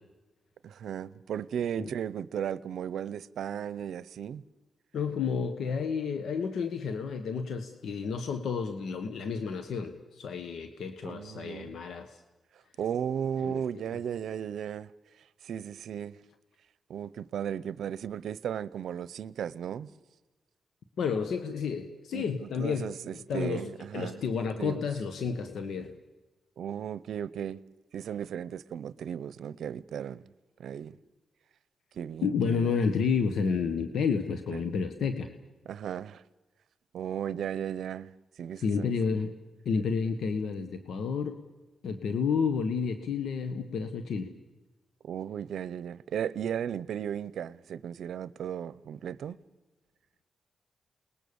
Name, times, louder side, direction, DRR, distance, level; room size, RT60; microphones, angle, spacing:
voice 1, 0.6-4.4 11.0-11.7 12.8-14.9 15.4-16.2 16.9-19.9 22.1-24.2 24.6-24.9 26.6-27.6 27.9-30.2 30.6-31.0 31.9-32.8 34.5-34.6 35.7-36.2 36.9-38.1 38.4-39.0 45.0-49.4, right 9 dB, 80° right, 0.7 m, -35 dB
voice 2, 4.9-12.2 13.4-13.6 21.0-22.9 23.3-25.9 32.2-35.3 38.6-39.3 39.6-41.4 41.8-44.3, left 5 dB, 80° left, 1.5 m, -30 dB
29.0 x 20.5 x 7.1 m
cardioid pair, 80°, 0 cm